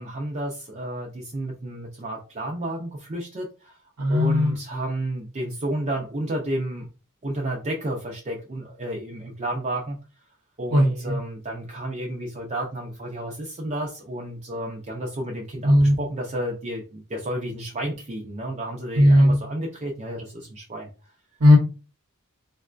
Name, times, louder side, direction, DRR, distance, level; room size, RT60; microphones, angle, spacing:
voice 1, 0.0-3.8 4.1-6.9 7.2-10.0 10.6-20.9, right 1 dB, 30° right, -1 dB, 0.5 m, -31 dB
voice 2, 4.0-4.6 10.7-11.2 15.6-16.0 19.0-19.4 21.4-21.6, left 1 dB, 85° right, 1 dB, 0.7 m, -16 dB
3.9 x 2.2 x 2.4 m, 0.33 s
head